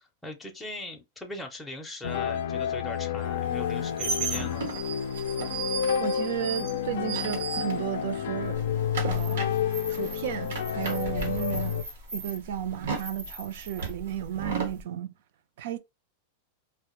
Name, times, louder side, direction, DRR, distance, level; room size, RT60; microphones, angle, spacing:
voice 1, 0.0-4.7, left 1 dB, 5° left, 0.5 m, -40 dB
sound 1, 2.0-11.8, left 8 dB, 75° left, 0.3 m, -30 dB
sound 2, 3.5-8.1 8.4-14.8, right 5 dB, 90° right, 0.9 m, -35 dB
voice 2, 6.0-8.6 9.0-9.5 9.9-11.8 12.1-15.1 15.6-15.8, right 10 dB, 65° right, 0.4 m, -33 dB
2.1 x 2.0 x 2.9 m
supercardioid pair, 145°, 0 cm